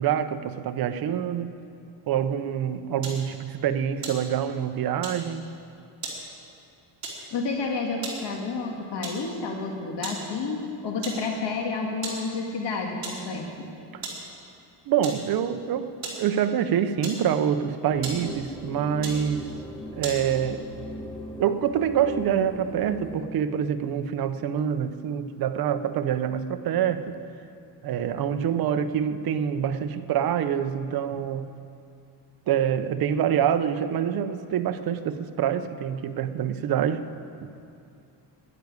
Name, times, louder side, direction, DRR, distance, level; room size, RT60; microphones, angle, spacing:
voice 1, 0.0-1.5 2.1-5.4 13.9-14.0 14.9-15.9 16.2-19.4 19.9-20.6 21.4-27.2 27.8-31.5 32.5-37.0 37.4-37.6, right 9 dB, 55° right, 9 dB, 0.7 m, -26 dB
sound 1, 3.0-3.3 3.9-4.7 5.0-5.3 6.0-6.3 7.0-7.3 7.8-8.3 9.0-9.3 10.0-10.3 10.6-10.7 11.0-11.3 12.0-12.3 13.0-13.3 14.0-14.3 15.0-15.3 16.0-16.3 17.0-17.5 18.0-18.3 19.0-19.3 20.0-20.3, right 3 dB, 40° right, 3.8 m, -36 dB
voice 2, 7.3-13.7, left 4 dB, 75° left, 1 dB, 1.8 m, -30 dB
sound 2, 17.9-23.2, left 1 dB, 10° left, 1.4 m, -39 dB
12.0 x 11.0 x 9.5 m, 2.5 s
cardioid pair, 155°, 42 cm